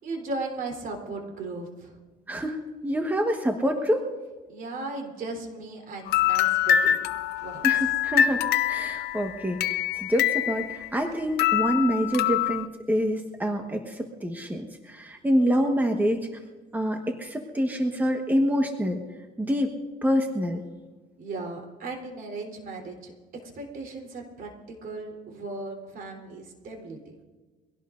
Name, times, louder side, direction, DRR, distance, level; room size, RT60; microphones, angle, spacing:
voice 1, 0.0-1.9 4.5-7.0 7.4-7.6 21.2-23.1 23.4-27.1, right 3 dB, 60° right, 1 dB, 3.6 m, -36 dB
voice 2, 2.3-4.1 7.6-16.3 16.7-19.0 19.4-19.7 20.0-20.6, equal, 10° right, 3 dB, 1.3 m, -26 dB
sound 1, 6.1-11.1 11.4-12.7, left 10 dB, 75° left, 0.8 m, -25 dB
23.5 x 17.0 x 2.6 m, 1.3 s
cardioid pair, 110°, 17 cm